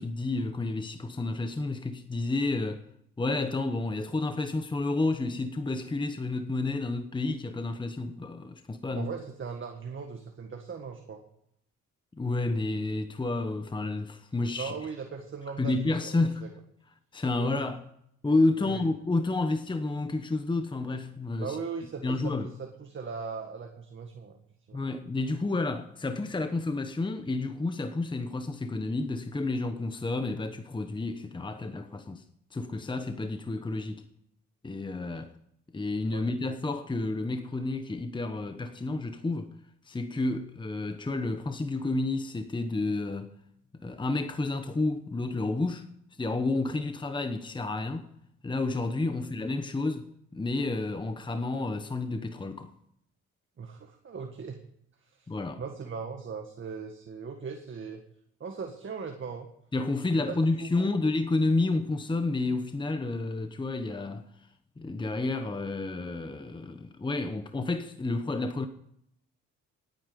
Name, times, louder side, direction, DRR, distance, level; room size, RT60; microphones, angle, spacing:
voice 1, 0.0-2.8 3.2-9.1 12.2-14.7 15.6-16.4 17.1-17.9 18.2-21.6 22.0-22.5 24.7-32.2 32.5-34.0 34.6-35.3 35.7-39.5 39.8-43.3 43.8-45.9 46.2-48.1 48.4-52.7 55.3-55.6 59.7-64.3 64.8-68.7, left 2 dB, 15° left, 1.0 m, -30 dB
voice 2, 8.9-11.2 14.5-16.5 17.4-17.7 18.6-18.8 21.4-24.4 24.7-24.8 36.1-36.3 49.1-49.2 53.6-54.6 55.0-55.3 55.6-58.0 58.4-59.5 60.3-61.0, right 5 dB, 40° right, 1.8 m, -39 dB
18.5 x 9.3 x 5.3 m
cardioid pair, 90°, 30 cm